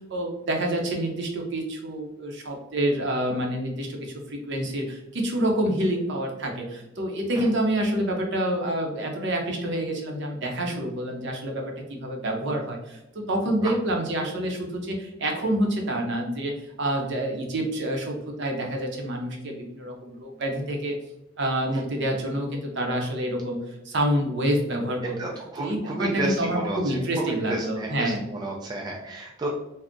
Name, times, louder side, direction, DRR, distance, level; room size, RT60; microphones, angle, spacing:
voice 1, 0.1-11.6 11.9-16.5 16.8-21.0 21.4-23.6 23.8-25.2 25.6-28.2, right 1 dB, 65° right, 1 dB, 0.6 m, -27 dB
voice 2, 25.2-29.5, right 2 dB, 20° right, -1 dB, 0.3 m, -31 dB
3.5 x 2.0 x 2.5 m, 0.92 s
head